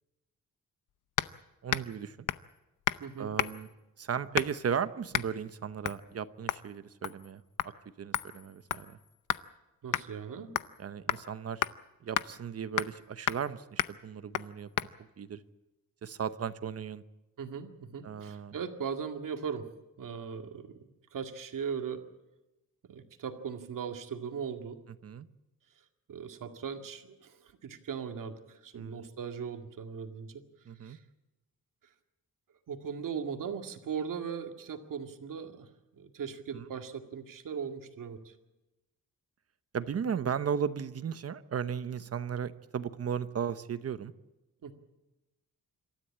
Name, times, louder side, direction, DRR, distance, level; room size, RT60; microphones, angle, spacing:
sound 1, 1.2-1.4 1.7-2.0 2.3-2.5 2.8-3.0 3.4-3.7 4.3-4.7 5.1-5.3 5.8-6.0 6.5-6.7 7.0-7.3 7.6-7.7 8.1-9.5 9.9-10.1 10.6-10.8 11.1-11.2 11.6-11.7 12.1-12.3 12.8-13.0 13.3-13.5 13.8-14.0 14.3-14.5 14.8-14.9, left 11 dB, 60° left, 0.7 m, -32 dB
voice 1, 1.6-2.2 3.2-3.7 4.0-7.7 8.0-9.0 10.8-11.7 12.0-14.7 15.2-15.4 16.0-17.0 18.0-18.6 25.0-25.3 28.7-29.1 30.7-31.0 36.5-36.6 39.7-44.1, right 7 dB, 45° right, 13 dB, 0.9 m, -35 dB
voice 2, 3.0-3.3 9.8-10.5 17.4-19.7 20.0-22.0 22.9-24.8 26.1-30.4 30.8-31.0 32.7-35.7 35.9-38.3 44.6-44.7, right 6 dB, 65° right, 5 dB, 2.1 m, -39 dB
26.5 x 13.5 x 8.7 m, 1.0 s
wide cardioid pair, 165°, 35 cm